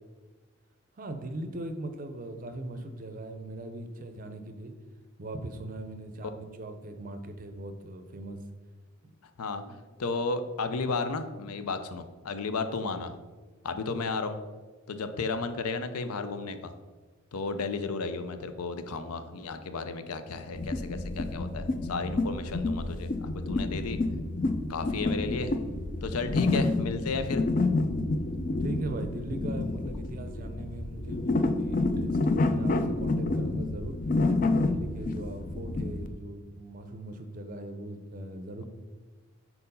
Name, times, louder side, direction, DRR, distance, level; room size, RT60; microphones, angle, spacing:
voice 1, 1.0-4.7 5.2-8.4 9.0-9.1 9.7-9.8 28.6-34.0 34.2-38.6, right 2 dB, 40° right, 7 dB, 0.5 m, -40 dB
voice 2, 10.0-13.1 13.6-14.4 14.9-16.7 17.3-24.0 24.7-25.5 26.0-27.5, left 4 dB, 90° left, 9 dB, 0.5 m, -33 dB
sound 1, 20.5-36.1, left 2 dB, 35° left, 0.3 m, -29 dB
4.5 x 4.1 x 5.4 m, 1.3 s
head